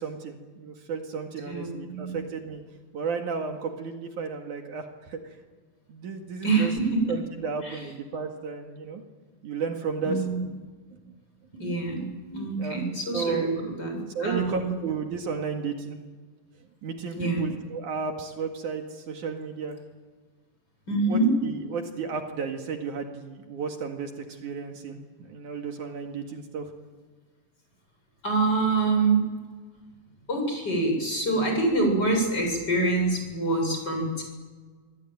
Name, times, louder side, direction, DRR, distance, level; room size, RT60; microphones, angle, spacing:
voice 1, 0.0-2.6 2.9-5.4 5.9-6.7 7.1-9.0 9.4-10.2 10.9-11.0 12.6-12.8 13.1-13.5 14.1-16.0 16.8-19.8 21.1-26.7, right 5 dB, 65° right, 4 dB, 3.3 m, -33 dB
voice 2, 1.5-2.2 6.4-7.0 7.6-7.8 10.0-10.5 11.6-14.7 17.2-17.5 20.9-21.3 28.2-29.2 30.3-34.2, right 3 dB, 30° left, 2 dB, 8.1 m, -26 dB
26.5 x 22.0 x 9.3 m, 1.5 s
omnidirectional pair, 3.9 m